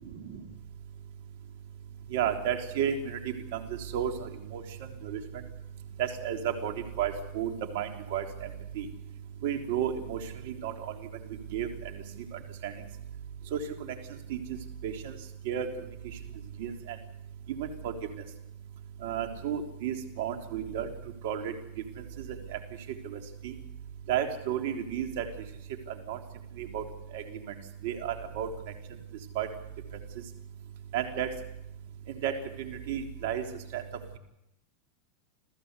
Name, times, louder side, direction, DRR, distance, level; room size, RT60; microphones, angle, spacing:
voice 1, 2.1-3.2 3.5-3.6 3.9-4.6 5.0-5.2 6.0-8.5 8.8-8.9 9.4-10.2 10.5-10.9 11.5-12.0 12.3-12.7 13.5-13.7 14.3-14.4 14.8-15.1 15.5-15.7 16.6-17.0 17.5-17.9 19.0-20.9 21.2-21.5 23.0-23.5 24.1-25.3 26.1-26.2 26.6-26.8 27.1-27.2 27.8-28.5 29.4-29.5 30.9-31.3 32.2-33.4 33.7-33.8, right 9 dB, 65° right, 5 dB, 3.4 m, -32 dB
28.5 x 15.0 x 8.3 m, 0.85 s
hypercardioid pair, 110°, 0 cm